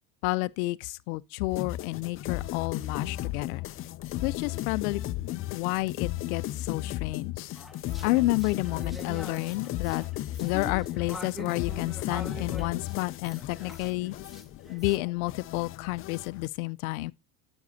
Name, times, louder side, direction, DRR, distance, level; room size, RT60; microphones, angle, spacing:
voice 1, 0.2-3.6 4.2-5.0 5.5-7.5 8.0-10.0 10.4-14.1 14.7-17.1, left 21 dB, 85° left, 0.5 m, -30 dB
sound 1, 1.5-16.5, left 14 dB, 35° left, 0.4 m, -35 dB
sound 2, 7.6-15.0, left 1 dB, ahead, 1.0 m, -44 dB
9.5 x 8.0 x 2.7 m
supercardioid pair, 110°, 42 cm